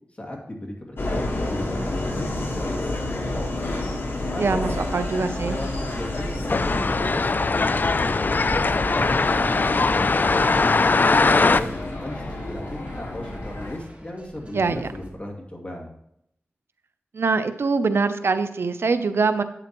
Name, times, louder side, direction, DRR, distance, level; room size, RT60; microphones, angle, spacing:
voice 1, 0.1-3.5 4.3-4.9 5.4-7.7 8.0-9.0 9.3-10.7 11.1-12.6 13.0-15.9, left 1 dB, 30° left, -1 dB, 2.3 m, -36 dB
Subway metro underground, 1.0-13.8, left 1 dB, 65° left, 1.4 m, -30 dB
voice 2, 4.4-5.6 14.5-14.9 17.1-19.4, right 4 dB, 80° right, 11 dB, 0.6 m, -23 dB
sound 1, 6.5-11.6, left 3 dB, 50° left, 0.4 m, -20 dB
sound 2, 9.1-15.1, right 1 dB, 35° right, 2.1 m, -46 dB
11.0 x 8.5 x 3.0 m, 0.76 s
wide cardioid pair, 55°, 4 cm